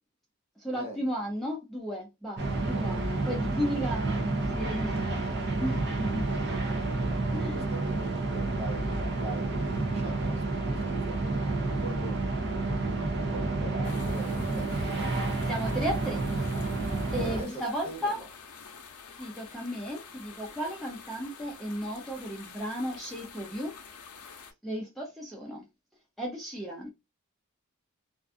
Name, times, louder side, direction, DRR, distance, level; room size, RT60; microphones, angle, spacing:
voice 1, 0.6-5.2 5.6-6.2 7.3-7.7 14.5-14.6 15.2-16.8 17.1-18.2 19.2-23.7 24.6-25.6 26.2-26.9, equal, ahead, 0.4 m, -35 dB
sound 1, 2.4-17.4, right 2 dB, 50° right, 0.6 m, -30 dB
voice 2, 2.7-3.1 6.4-6.8 7.1-12.2 13.2-15.4 17.2-18.3, right 2 dB, 30° right, 1.0 m, -43 dB
sound 2, 13.8-24.5, left 5 dB, 90° left, 0.6 m, -48 dB
2.5 x 2.3 x 2.3 m
head